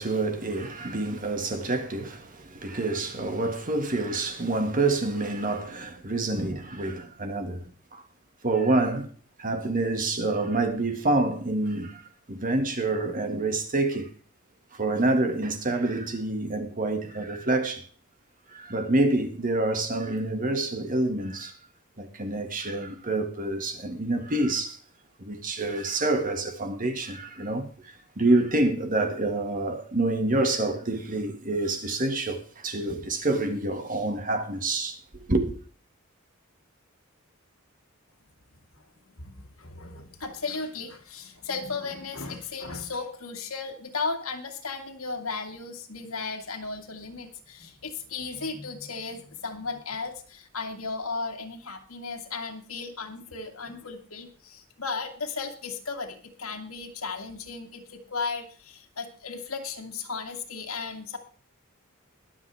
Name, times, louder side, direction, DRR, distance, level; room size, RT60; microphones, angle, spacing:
voice 1, 0.0-8.0 8.4-9.1 9.4-14.1 14.8-17.9 18.5-21.6 22.0-24.8 25.2-35.0 35.2-35.6, right 2 dB, 40° right, 1.9 m, -27 dB
voice 2, 39.2-61.2, left 4 dB, 85° left, 2.2 m, -35 dB
22.5 x 7.5 x 3.5 m
head